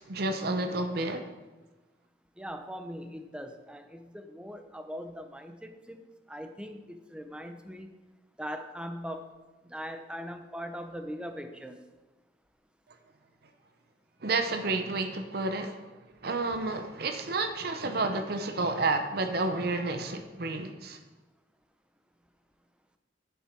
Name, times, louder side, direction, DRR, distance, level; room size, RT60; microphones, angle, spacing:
voice 1, 0.0-1.3 14.2-15.8 16.2-21.0, right 3 dB, 60° right, 7 dB, 0.7 m, -30 dB
voice 2, 2.4-6.0 6.3-7.9 8.4-9.3 9.7-11.8, equal, 5° right, 7 dB, 0.7 m, -40 dB
10.5 x 7.4 x 4.5 m, 1.2 s
head